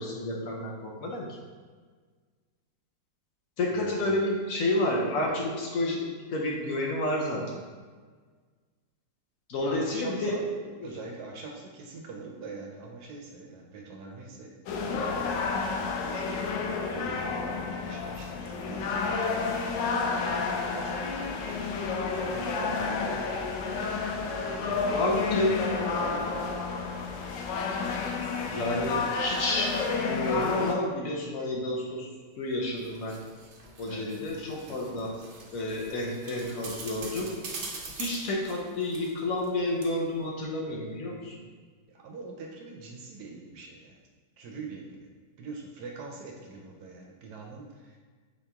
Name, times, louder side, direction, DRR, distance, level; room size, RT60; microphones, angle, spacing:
voice 1, 0.0-1.4 3.6-6.0 6.3-7.6 9.5-10.4 10.8-10.9 25.0-25.6 28.5-32.1 32.4-33.2 33.8-35.1 35.5-37.3 37.9-41.4, left 1 dB, 65° left, -1 dB, 0.9 m, -30 dB
voice 2, 3.7-4.2 9.6-10.4 10.8-19.6 19.8-21.3 22.1-23.4 24.0-26.6 33.9-34.1 34.6-35.2 41.9-44.0 44.4-45.1 45.4-48.0, right 3 dB, 70° right, 1 dB, 1.1 m, -44 dB
sound 1, 14.7-30.7, left 4 dB, 85° left, 1.2 m, -30 dB
sound 2, 32.5-39.5 39.8-39.9, right 3 dB, 55° right, 0.8 m, -43 dB
5.0 x 2.9 x 3.4 m, 1.5 s
omnidirectional pair, 1.9 m